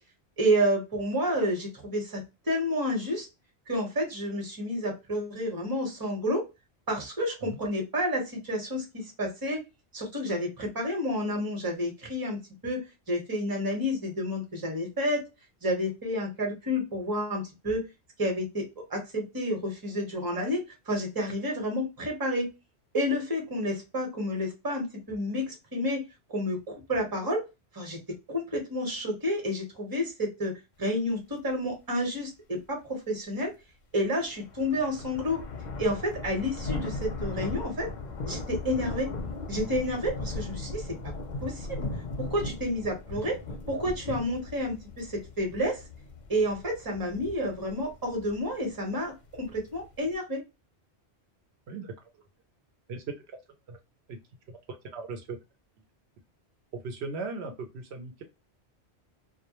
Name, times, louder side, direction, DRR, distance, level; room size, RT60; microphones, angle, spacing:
voice 1, 0.4-3.3 3.7-6.4 6.9-9.6 9.9-15.2 15.6-17.8 18.2-22.5 22.9-26.0 26.3-27.4 27.7-28.0 28.3-30.5 30.8-33.5 33.9-35.4 35.8-37.9 38.3-39.1 39.5-40.9 41.4-41.9 42.2-43.4 43.7-45.8 46.3-49.1 49.4-50.4, equal, 20° right, 1 dB, 0.8 m, -30 dB
sound 1, 34.2-50.1, left 3 dB, 55° left, 0.6 m, -38 dB
voice 2, 51.7-52.2 52.9-53.1 53.7-53.8 54.1-54.2 54.5-54.6 54.8-55.4 56.8-58.2, right 4 dB, 75° right, 4 dB, 0.8 m, -38 dB
2.1 x 2.0 x 2.8 m, 0.26 s
omnidirectional pair, 1.1 m